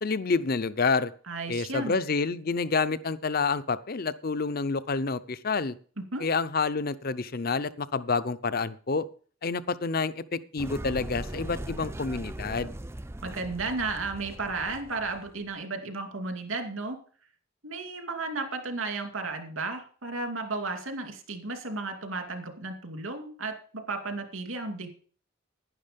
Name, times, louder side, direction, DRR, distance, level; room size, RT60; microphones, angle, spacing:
voice 1, 0.0-1.1 1.5-5.7 6.2-9.1 9.4-12.7, left 4 dB, 45° left, 15 dB, 0.6 m, -28 dB
voice 2, 1.3-2.0 6.0-6.2 13.2-17.0 17.6-24.9, right 3 dB, 80° right, 4 dB, 2.6 m, -34 dB
sound 1, 10.6-15.5, right 1 dB, 10° right, 0.4 m, -39 dB
11.0 x 10.5 x 5.2 m, 0.43 s
head